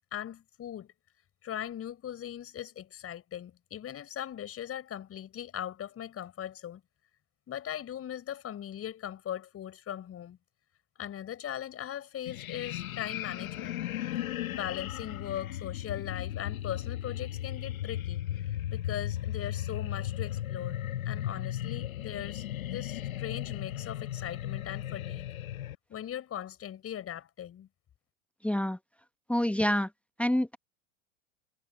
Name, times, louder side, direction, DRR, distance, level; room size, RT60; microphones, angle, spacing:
voice 1, 0.1-0.9 1.4-6.8 7.5-10.4 11.0-13.7 14.5-18.2 18.7-20.8 21.0-25.3 25.9-27.7, left 10 dB, 35° left, 6.0 m, -39 dB
sound 1, 12.3-25.8, left 12 dB, 70° left, 2.0 m, -36 dB
voice 2, 28.4-28.8 29.3-29.9 30.2-30.6, left 1 dB, 5° left, 1.3 m, -27 dB
figure-of-eight pair, 85°, 42 cm